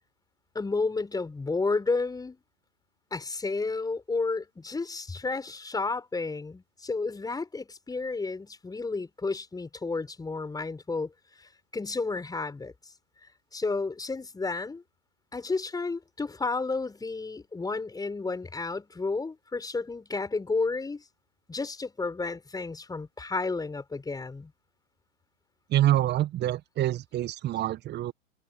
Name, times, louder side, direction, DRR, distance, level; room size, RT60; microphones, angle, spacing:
voice 1, 0.5-2.4 3.1-11.1 11.4-12.7 13.5-14.8 15.3-21.0 21.5-24.5, left 3 dB, 10° left, 6.7 m, -31 dB
voice 2, 25.7-28.1, right 13 dB, 25° right, 1.6 m, -26 dB
figure-of-eight pair, 100°, 37 cm